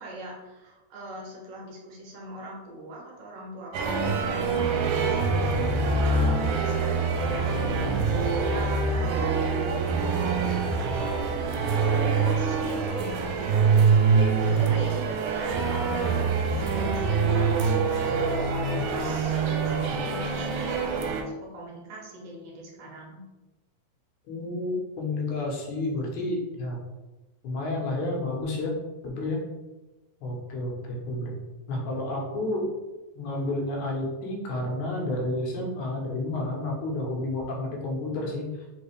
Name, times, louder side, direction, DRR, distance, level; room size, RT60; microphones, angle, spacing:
voice 1, 0.0-4.1 4.4-5.9 6.2-9.3 10.0-11.4 11.8-19.7 20.0-23.2, right 1 dB, 65° right, -2 dB, 1.8 m, -41 dB
sound 1, 3.7-21.2, right 4 dB, 85° right, 2.0 m, -25 dB
voice 2, 24.3-26.8 27.4-28.7 29.0-29.4 30.2-31.4 31.7-32.7 33.1-38.5, left 2 dB, 85° left, -1 dB, 2.5 m, -30 dB
5.1 x 3.1 x 3.3 m, 1.1 s
omnidirectional pair, 3.5 m